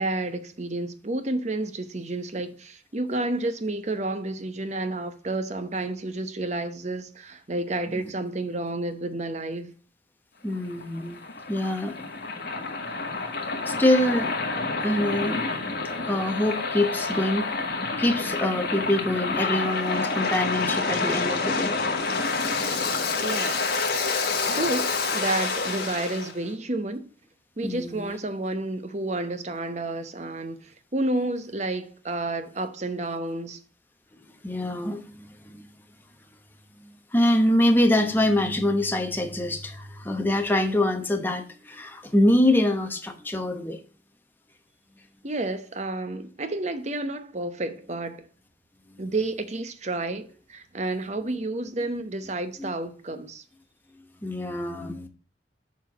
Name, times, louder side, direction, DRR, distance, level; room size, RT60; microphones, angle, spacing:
voice 1, 0.0-9.7 23.2-23.7 24.5-27.1 27.6-33.6 45.2-48.3 49.0-53.4, right 2 dB, 40° right, 0.9 m, -30 dB
voice 2, 10.4-11.2 11.5-12.0 13.7-14.3 14.8-15.4 16.1-17.5 18.0-21.7 27.6-28.2 34.4-35.7 36.8-43.8 48.9-49.0 52.6-52.7 54.2-55.1, left 1 dB, 10° left, 1.0 m, -25 dB
Waves surf, 10.5-26.3, left 3 dB, 55° left, 1.7 m, -28 dB
7.3 x 4.6 x 6.8 m
head